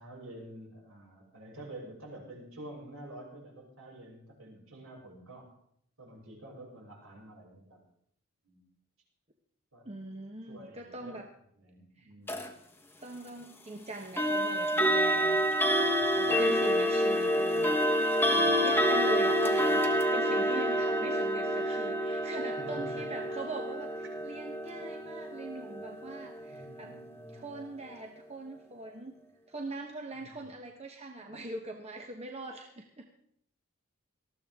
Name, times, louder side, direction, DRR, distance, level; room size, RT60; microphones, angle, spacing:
voice 1, 0.0-5.5 6.0-7.8 8.4-8.7 9.7-9.9 10.5-11.2 11.6-12.4 15.9-16.5 18.4-18.8 21.6-21.8 22.6-23.1 26.5-27.6 30.2-30.4, right 1 dB, 70° right, -2 dB, 6.6 m, -49 dB
voice 2, 9.8-11.3 12.0-12.1 13.0-15.7 16.1-26.9 27.3-29.2 29.5-33.1, right 2 dB, 30° right, 2 dB, 1.1 m, -42 dB
sound 1, 12.3-12.5 14.2-27.0, equal, 10° left, 1.1 m, -28 dB
19.0 x 14.0 x 3.6 m, 0.68 s
head